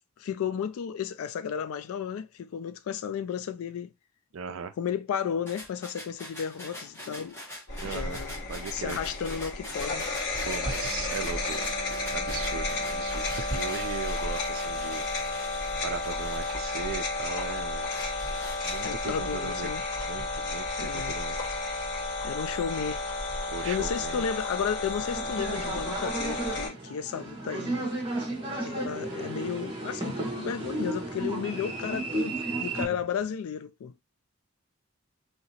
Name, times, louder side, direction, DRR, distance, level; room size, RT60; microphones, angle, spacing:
voice 1, 0.2-3.9 4.8-7.4 7.8-8.4 8.7-10.1 18.8-19.8 20.8-21.2 22.2-23.0 23.6-27.9 28.6-33.9, left 7 dB, 80° left, 0.3 m, -33 dB
voice 2, 4.3-4.7 7.8-8.2 8.5-9.0 10.5-11.7 12.1-15.5 15.8-17.9 18.6-19.7 20.1-21.4 23.5-24.2, right 6 dB, 65° right, 0.4 m, -38 dB
sound 1, 5.5-17.1 17.6-19.1, left 1 dB, 10° left, 1.1 m, -44 dB
sound 2, 7.7-26.7, left 2 dB, 50° left, 1.9 m, -32 dB
sound 3, 25.0-32.9, right 2 dB, 25° right, 1.0 m, -33 dB
3.1 x 2.8 x 2.8 m
head